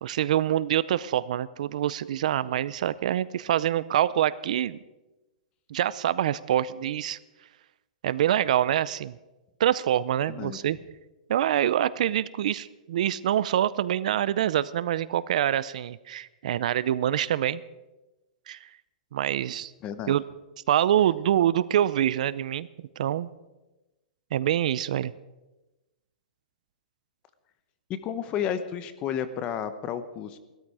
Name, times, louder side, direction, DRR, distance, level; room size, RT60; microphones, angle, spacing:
voice 1, 0.0-4.8 5.7-7.2 8.0-9.2 9.6-10.8 11.3-17.6 18.5-18.7 19.1-19.7 20.1-20.2 20.7-22.7 23.0-23.3 24.3-25.1, right 11 dB, 60° right, 18 dB, 0.5 m, -25 dB
voice 2, 10.3-10.6 19.8-20.2 27.9-30.4, left 9 dB, 25° left, 12 dB, 0.8 m, -32 dB
17.0 x 13.0 x 4.8 m, 1.1 s
hypercardioid pair, 165°, 4 cm